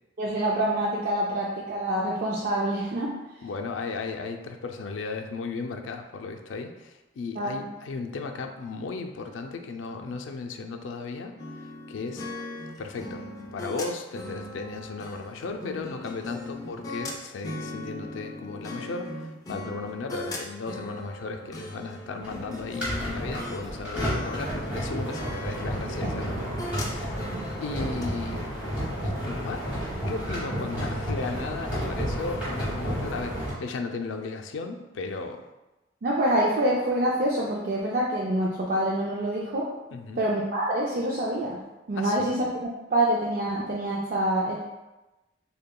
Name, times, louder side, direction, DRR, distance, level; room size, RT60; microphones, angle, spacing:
voice 1, 0.2-3.1 7.4-7.7 36.0-39.7 40.2-41.6 41.9-44.6, right 1 dB, 50° right, -4 dB, 0.4 m, -26 dB
voice 2, 3.4-11.4 11.9-12.2 12.8-13.2 13.5-27.2 27.6-28.6 29.0-29.6 30.1-35.4 39.9-40.2 42.0-42.3, left 4 dB, 85° left, 4 dB, 0.4 m, -35 dB
sound 1, 11.4-23.6 24.0-28.1, left 1 dB, 20° left, 0.4 m, -38 dB
sound 2, 22.2-33.5, equal, 5° right, 1.4 m, -31 dB
6.5 x 2.2 x 2.2 m, 1.1 s
head